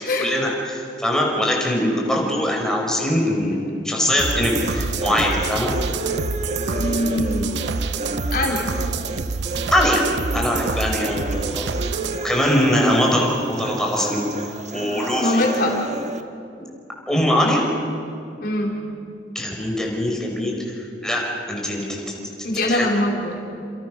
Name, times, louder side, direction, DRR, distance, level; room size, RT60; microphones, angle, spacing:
voice 1, 0.2-5.7 9.7-10.0 10.3-11.6 12.2-14.3 14.7-15.4 17.1-17.6 19.4-22.0 22.7-22.9, left 1 dB, 5° left, -1 dB, 5.3 m, -22 dB
sound 1, 4.2-16.2, right 2 dB, 40° right, 1.3 m, -31 dB
sound 2, 4.2-12.2, right 4 dB, 75° right, 0.8 m, -27 dB
voice 2, 6.7-7.7 8.3-8.7 15.2-15.9 18.4-18.8 22.4-23.4, left 1 dB, 55° left, 0 dB, 4.1 m, -23 dB
29.5 x 27.5 x 6.4 m, 2.5 s
head